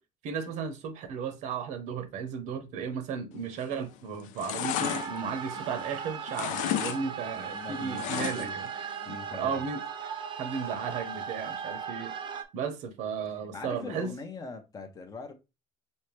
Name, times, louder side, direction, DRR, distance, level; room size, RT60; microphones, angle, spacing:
voice 1, 0.2-8.9 9.3-9.8 10.4-12.1 12.5-14.1, right 6 dB, 70° right, 0.7 m, -35 dB
sound 1, 3.5-3.9 4.2-6.0 6.3-7.0 7.3-8.7 9.0-9.1, left 11 dB, 80° left, 0.4 m, -33 dB
sound 2, 4.7-12.4, right 7 dB, 40° right, 0.6 m, -37 dB
voice 2, 7.5-8.6 9.0-9.6 13.5-15.3, left 4 dB, 30° left, 0.6 m, -41 dB
5.3 x 2.1 x 3.0 m
cardioid pair, 135°, 13 cm